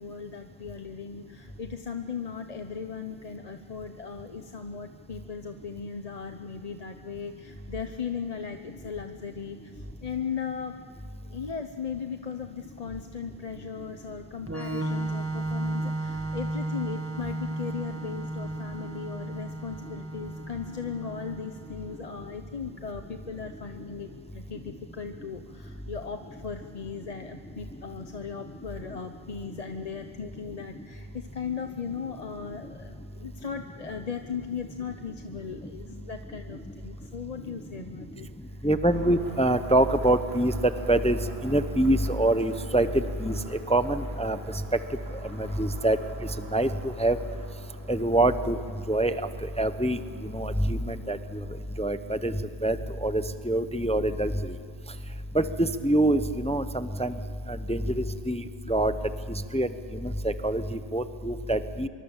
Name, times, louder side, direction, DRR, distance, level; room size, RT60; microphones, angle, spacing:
voice 1, 0.0-10.8 11.2-38.3, left 6 dB, 40° left, 6 dB, 0.9 m, -37 dB
Organ, 14.5-22.0, right 2 dB, 15° right, 1.8 m, -34 dB
voice 2, 38.6-40.5 40.9-41.2 41.4-43.3 43.7-44.4 45.4-46.0 46.5-46.7 47.0-47.2 47.9-48.6 48.9-49.2 49.6-50.0 50.2-51.2 51.8-52.3 52.6-52.8 53.0-54.5 55.3-57.1 57.5-58.4 58.7-58.9 59.5-59.7 60.0-61.9, right 1 dB, 5° left, 11 dB, 0.6 m, -25 dB
sound 1, 38.8-51.6, right 1 dB, 80° right, 3.8 m, -48 dB
25.0 x 24.0 x 7.3 m, 2.5 s
omnidirectional pair, 1.1 m